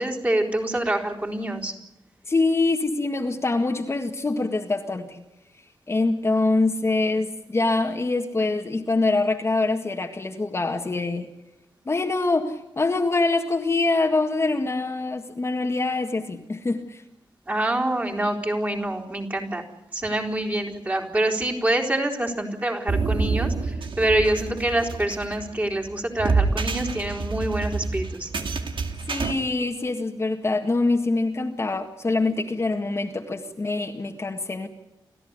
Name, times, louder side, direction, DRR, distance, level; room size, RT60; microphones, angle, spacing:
voice 1, 0.0-1.7 17.5-19.6 19.9-28.3, right 1 dB, 20° right, 1 dB, 3.9 m, -26 dB
voice 2, 2.3-5.2 5.9-11.3 11.9-17.0 29.1-34.7, left 3 dB, 30° left, 3 dB, 1.7 m, -24 dB
sound 1, 22.9-29.3, right 4 dB, 75° right, 2.2 m, -27 dB
29.5 x 14.0 x 9.6 m, 0.89 s
wide cardioid pair, 150°, 8 cm